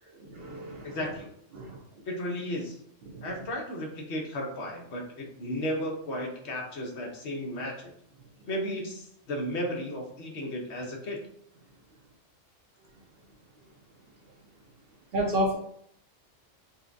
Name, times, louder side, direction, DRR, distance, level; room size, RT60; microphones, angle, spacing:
voice 1, 0.1-1.0 1.5-1.8 3.1-3.3 15.1-15.6, equal, 60° right, 1 dB, 0.7 m, -31 dB
voice 2, 0.8-1.3 2.0-2.8 3.2-7.9 8.5-11.2, equal, 60° left, 0 dB, 1.0 m, -34 dB
5.4 x 2.1 x 2.6 m, 0.69 s
omnidirectional pair, 1.3 m